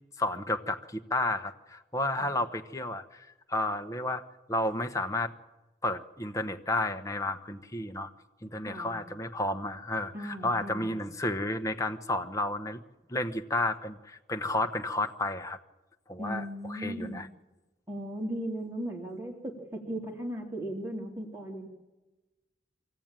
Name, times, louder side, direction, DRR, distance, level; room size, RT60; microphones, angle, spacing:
voice 1, 0.2-4.2 4.5-5.3 5.8-8.1 8.4-12.8 13.1-15.6 16.1-17.3, left 2 dB, 15° left, 6 dB, 1.0 m, -32 dB
voice 2, 8.6-9.0 10.1-11.0 16.2-17.2 17.9-21.7, right 1 dB, 15° right, -1 dB, 3.2 m, -37 dB
24.5 x 16.5 x 9.0 m, 1.1 s
head